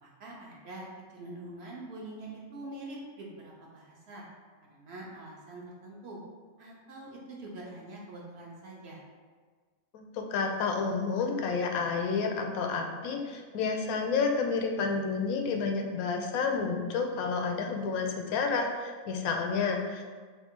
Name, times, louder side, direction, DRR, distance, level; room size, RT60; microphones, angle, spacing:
voice 1, 0.0-4.2 4.7-6.2 6.6-9.0, right 2 dB, 60° right, -3 dB, 0.8 m, -44 dB
voice 2, 9.9-20.1, left 5 dB, 90° left, 3 dB, 1.0 m, -30 dB
3.4 x 2.4 x 4.3 m, 1.5 s
omnidirectional pair, 1.5 m